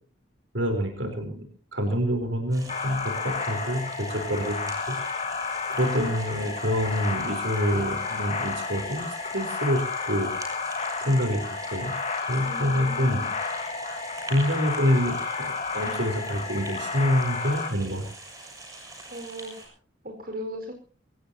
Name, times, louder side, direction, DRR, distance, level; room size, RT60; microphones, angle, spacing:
voice 1, 0.5-4.9 5.4-10.3 11.0-11.9 12.3-13.3 14.3-18.0, equal, 80° right, 5 dB, 4.1 m, -27 dB
sound 1, 2.5-19.7, right 2 dB, 20° right, 6.3 m, -44 dB
sound 2, 2.7-17.7, left 4 dB, 35° left, 2.1 m, -31 dB
voice 2, 12.4-13.3 19.1-19.7 20.0-20.7, equal, 50° right, 4 dB, 4.9 m, -38 dB
24.0 x 17.0 x 2.9 m, 0.39 s
head